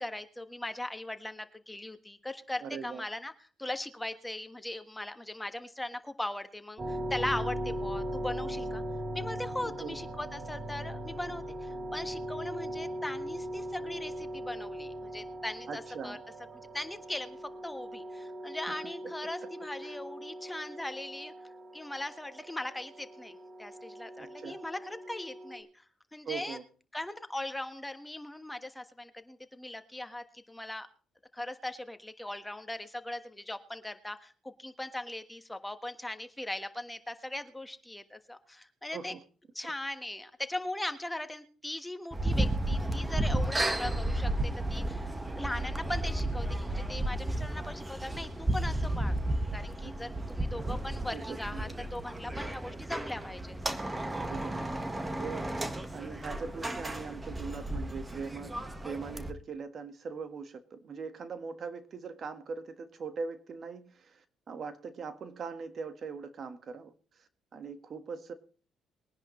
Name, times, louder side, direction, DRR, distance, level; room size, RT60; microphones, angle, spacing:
voice 1, 0.0-3.3 3.6-8.8 9.1-16.2 16.7-21.3 21.7-25.8 26.1-26.6 26.9-30.9 31.3-39.1 39.5-49.1 49.5-53.6, left 1 dB, 10° left, 9 dB, 1.4 m, -39 dB
voice 2, 2.6-3.1 9.6-9.9 15.7-16.2 19.8-20.0 24.2-24.6 26.2-26.6 38.9-39.2 49.8-49.9 51.1-51.7 54.2-54.6 55.2-58.5 58.8-68.3, right 5 dB, 55° right, 9 dB, 1.5 m, -41 dB
sound 1, 6.8-25.6, equal, 40° right, 3.6 m, -39 dB
sound 2, 42.1-59.3, right 1 dB, 20° right, 1.5 m, -33 dB
21.5 x 10.5 x 3.2 m, 0.40 s
supercardioid pair, 75°, 0 cm